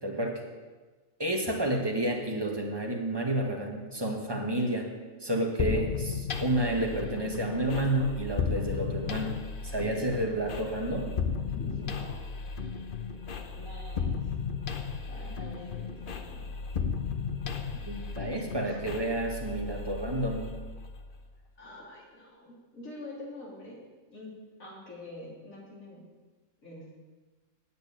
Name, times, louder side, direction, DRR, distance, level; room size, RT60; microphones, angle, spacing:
voice 1, 0.0-0.4 1.2-4.9 5.2-9.4 9.6-11.1 17.9-20.5, right 1 dB, 20° right, 1 dB, 1.5 m, -30 dB
sound 1, 5.6-21.2, left 5 dB, 45° left, 0.8 m, -35 dB
voice 2, 11.5-12.2 13.5-14.3 15.1-16.5 18.6-18.9 21.6-23.8 24.1-24.3 24.6-26.1 26.6-27.1, left 2 dB, 85° left, -5 dB, 3.7 m, -46 dB
9.1 x 6.7 x 8.7 m, 1.3 s
omnidirectional pair, 1.4 m